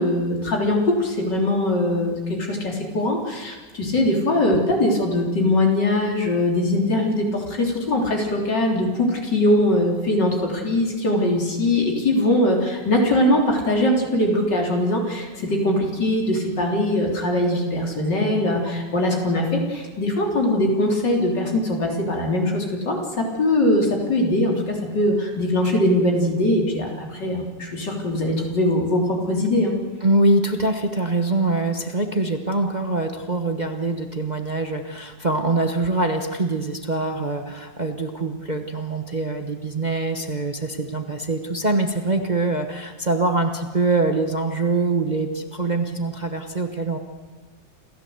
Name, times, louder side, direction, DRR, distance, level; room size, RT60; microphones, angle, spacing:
voice 1, 0.0-29.7, left 1 dB, 70° left, 0 dB, 4.2 m, -21 dB
voice 2, 30.0-47.0, right 2 dB, 25° right, 5 dB, 1.2 m, -24 dB
27.5 x 14.5 x 8.0 m, 1.3 s
omnidirectional pair, 2.0 m